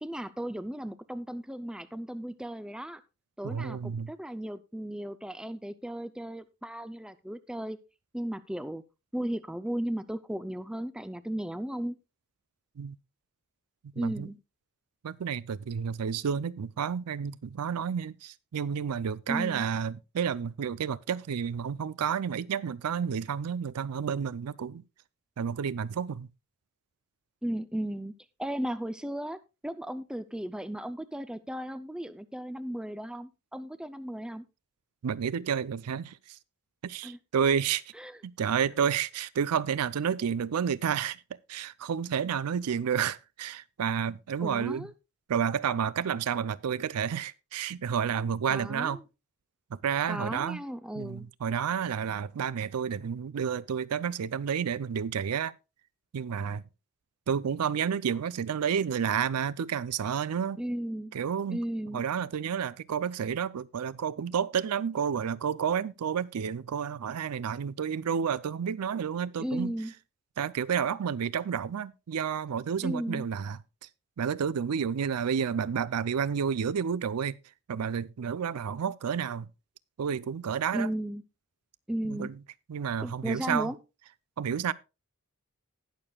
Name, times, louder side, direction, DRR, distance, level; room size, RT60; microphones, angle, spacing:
voice 1, 0.0-3.0 3.4-7.8 8.1-8.8 9.1-12.0 14.0-14.4 19.3-19.6 27.4-28.1 28.4-34.4 37.0-37.2 37.9-38.2 44.4-44.9 48.5-49.0 50.1-51.3 60.6-61.1 61.5-62.0 69.4-69.9 72.8-73.3 80.7-81.2 81.9-82.3 83.0-83.8, right 1 dB, 5° right, 0.4 m, -35 dB
voice 2, 3.4-4.1 12.8-13.0 13.9-14.3 15.0-24.8 25.4-26.3 35.0-36.4 36.8-37.8 38.2-41.2 41.5-44.9 45.3-49.0 49.7-50.6 51.0-55.5 56.1-56.6 57.3-60.6 61.1-61.6 61.9-69.8 70.4-73.6 74.2-77.4 77.7-79.5 80.0-80.9 82.1-82.3 82.7-83.7 84.4-84.7, right 7 dB, 90° right, 0.4 m, -30 dB
19.5 x 6.8 x 2.3 m
head